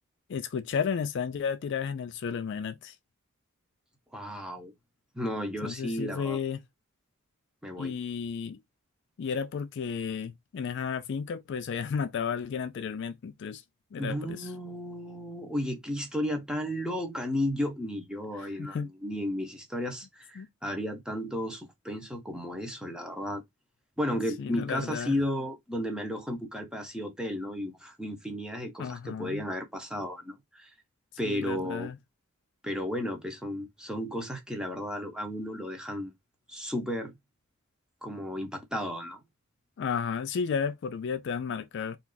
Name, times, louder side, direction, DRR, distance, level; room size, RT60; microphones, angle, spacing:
voice 1, 0.3-2.9 5.6-6.6 7.8-8.6 9.2-13.6 13.9-14.5 18.6-18.9 20.4-20.5 24.4-25.2 28.8-29.4 31.2-32.0 39.8-42.0, left 6 dB, 60° left, 0.4 m, -33 dB
voice 2, 4.1-4.7 5.1-6.4 7.6-7.9 14.0-23.4 24.0-30.7 31.2-31.9 32.6-36.1 36.5-37.1 38.0-39.2, equal, 5° right, 0.7 m, -33 dB
2.5 x 2.3 x 3.7 m
head